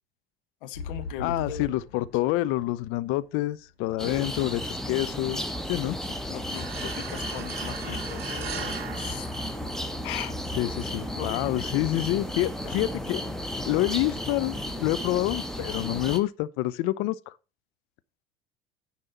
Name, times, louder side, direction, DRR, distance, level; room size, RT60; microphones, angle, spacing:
voice 1, 0.6-1.8 4.0-4.3 6.0-9.3 10.0-10.4 11.1-11.7, left 11 dB, 60° left, 1.0 m, -39 dB
sound 1, 0.7-4.6 5.2-5.3, left 2 dB, 90° left, 1.0 m, -39 dB
voice 2, 1.2-5.4 5.7-6.0 10.5-13.2 13.6-17.3, left 16 dB, 45° left, 0.6 m, -27 dB
sound 2, 4.0-16.2, equal, ahead, 1.2 m, -34 dB
sound 3, 6.5-10.1, right 7 dB, 85° right, 0.6 m, -39 dB
9.8 x 4.4 x 7.1 m
figure-of-eight pair, 65°, 30 cm